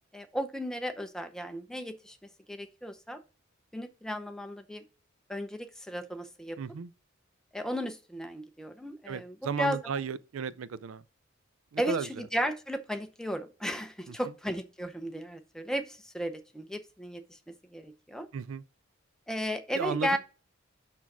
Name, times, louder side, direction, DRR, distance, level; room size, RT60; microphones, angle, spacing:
voice 1, 0.1-2.2 2.5-3.2 3.7-4.8 5.3-6.6 7.5-9.8 11.8-17.4 17.7-18.3 19.3-20.2, equal, 5° left, 0.7 m, -35 dB
voice 2, 6.6-6.9 9.1-11.0 11.7-12.1 14.1-14.2 18.3-18.6 19.8-20.2, right 6 dB, 85° right, 0.4 m, -34 dB
6.1 x 5.9 x 4.7 m
head